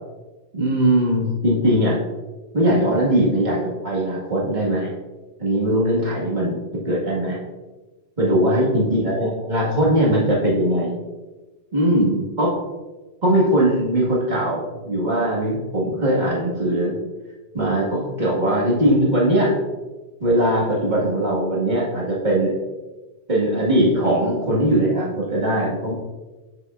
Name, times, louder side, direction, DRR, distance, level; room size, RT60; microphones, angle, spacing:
voice 1, 0.5-2.0 2.5-4.9 5.4-7.4 8.2-11.0 11.7-12.6 13.2-17.0 17.5-19.6 20.2-22.6 23.3-25.9, right 1 dB, 40° right, -5 dB, 2.0 m, -20 dB
7.4 x 6.7 x 2.5 m, 1.2 s
omnidirectional pair, 1.2 m